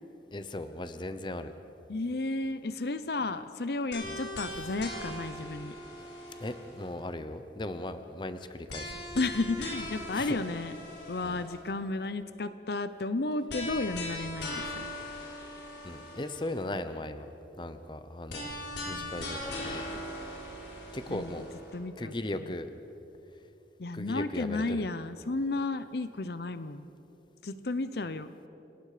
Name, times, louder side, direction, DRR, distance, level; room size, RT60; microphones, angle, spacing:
voice 1, 0.3-1.5 4.0-4.2 6.4-9.0 10.1-10.4 11.2-11.4 15.8-17.3 17.6-18.5 18.8-20.0 20.9-21.5 22.0-22.7 23.9-24.9, left 1 dB, 25° left, 10 dB, 0.8 m, -38 dB
voice 2, 1.9-5.7 9.1-10.8 11.1-14.8 18.9-19.1 21.1-21.4 21.7-22.5 23.8-26.9 27.4-28.3, left 2 dB, 65° left, 12 dB, 0.7 m, -33 dB
sound 1, 3.9-7.0 8.7-11.7 13.5-16.7 18.3-21.7, left 1 dB, 80° left, 4.2 m, -40 dB
29.0 x 18.5 x 5.0 m, 3.0 s
head